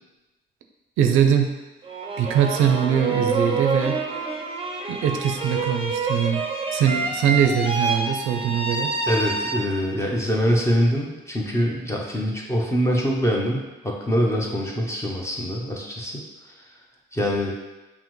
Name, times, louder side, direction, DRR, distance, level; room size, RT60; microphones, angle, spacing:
voice 1, 1.0-1.5 2.2-4.0 4.9-6.4 6.7-8.9, right 8 dB, 90° right, 5 dB, 0.5 m, -21 dB
sound 1, 1.8-10.0, right 3 dB, 25° right, 0.6 m, -27 dB
voice 2, 9.1-16.2 17.1-17.5, equal, 15° left, -2 dB, 0.7 m, -24 dB
5.7 x 2.1 x 3.1 m, 1.1 s
cardioid pair, 90°, 20 cm